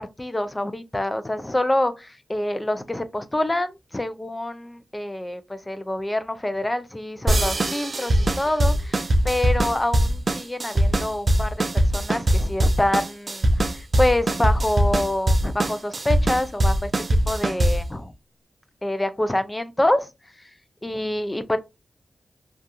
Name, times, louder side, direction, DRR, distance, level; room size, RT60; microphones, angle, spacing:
voice 1, 0.0-11.6 11.9-16.9 17.3-18.1 18.8-20.1 20.8-21.6, left 1 dB, 20° left, 0.4 m, -26 dB
sound 1, 7.3-17.9, right 1 dB, 50° right, 0.4 m, -22 dB
2.7 x 2.4 x 2.3 m
cardioid pair, 65°, 0 cm